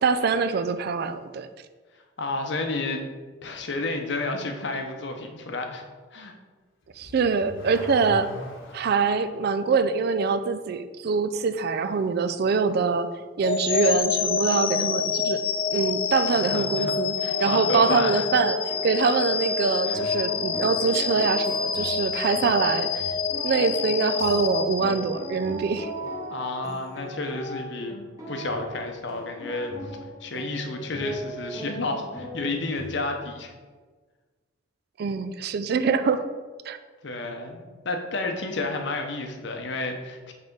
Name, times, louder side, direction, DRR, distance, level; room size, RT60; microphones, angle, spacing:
voice 1, 0.0-1.5 7.0-8.3 8.7-13.1 13.4-15.4 15.7-17.1 17.4-18.6 18.8-23.1 23.4-25.9 35.0-36.2 36.7-36.8, right 5 dB, 55° right, 10 dB, 0.3 m, -24 dB
voice 2, 2.2-3.0 3.4-5.8 6.1-6.3 16.3-16.9 17.2-18.2 19.9-20.0 26.3-28.0 28.3-33.5 37.0-40.3, left 2 dB, 60° left, 4 dB, 0.8 m, -31 dB
Car / Accelerating revving vroom, 6.8-9.1, left 1 dB, 85° left, 1.2 m, -40 dB
sound 1, 13.4-25.5, left 6 dB, 30° left, 0.3 m, -27 dB
sound 2, 17.1-33.0, equal, 20° right, 1.0 m, -38 dB
5.6 x 3.5 x 5.3 m, 1.4 s
head